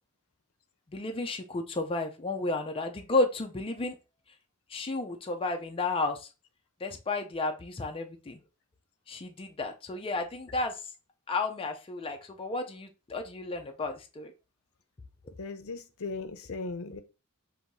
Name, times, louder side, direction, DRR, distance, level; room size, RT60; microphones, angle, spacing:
voice 1, 0.9-4.0 4.7-6.3 6.8-8.4 9.1-10.8 11.3-14.3, left 2 dB, 25° left, 4 dB, 0.4 m, -32 dB
voice 2, 15.4-17.0, left 3 dB, 70° left, 10 dB, 0.7 m, -37 dB
6.2 x 2.7 x 2.6 m, 0.29 s
head